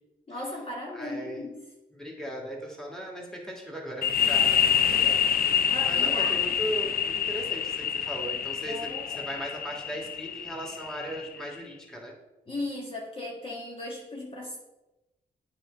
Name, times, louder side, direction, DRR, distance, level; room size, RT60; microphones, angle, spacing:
voice 1, 0.3-1.6 4.3-4.4 5.7-6.4 8.7-9.3 12.5-14.6, left 2 dB, 35° left, -4 dB, 1.6 m, -37 dB
voice 2, 0.9-1.4 1.9-5.5 5.9-12.1, equal, 5° left, -1 dB, 2.5 m, -38 dB
sound 1, 4.0-11.5, left 8 dB, 60° left, 0.5 m, -27 dB
7.9 x 3.8 x 5.5 m, 1.0 s
cardioid pair, 55°, 17 cm